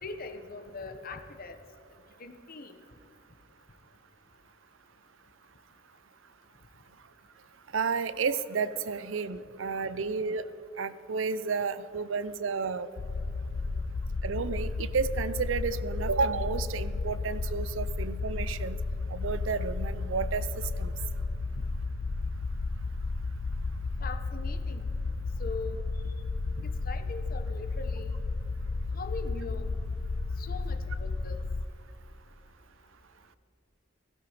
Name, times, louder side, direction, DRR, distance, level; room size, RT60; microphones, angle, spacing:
voice 1, 0.0-1.6 2.2-2.7 24.0-24.9 25.4-25.8 26.6-28.2 28.9-29.7 30.4-31.4, left 4 dB, 50° left, 9 dB, 1.1 m, -41 dB
voice 2, 7.7-10.4 10.8-12.9 14.2-18.8 19.1-20.5 20.8-20.9, right 5 dB, 75° right, 15 dB, 0.6 m, -31 dB
sound 1, 13.0-31.6, left 3 dB, 65° left, 0.5 m, -33 dB
16.0 x 15.5 x 5.0 m, 2.6 s
head